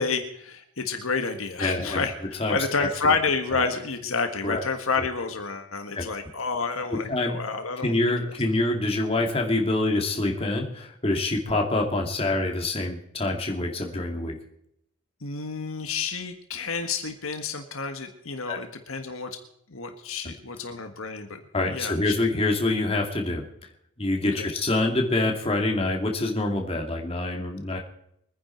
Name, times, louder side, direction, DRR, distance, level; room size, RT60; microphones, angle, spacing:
voice 1, 0.0-8.0 15.2-19.4 19.7-21.4 21.7-22.0 24.2-24.5, left 4 dB, 75° left, 6 dB, 1.6 m, -29 dB
voice 2, 1.6-2.0 2.4-3.2 4.4-4.6 5.0-5.1 5.9-6.1 7.1-7.4 7.8-14.3 18.5-18.6 21.5-23.4 24.0-27.8, left 2 dB, 25° left, 2 dB, 2.3 m, -26 dB
24.0 x 10.0 x 4.5 m, 0.73 s
head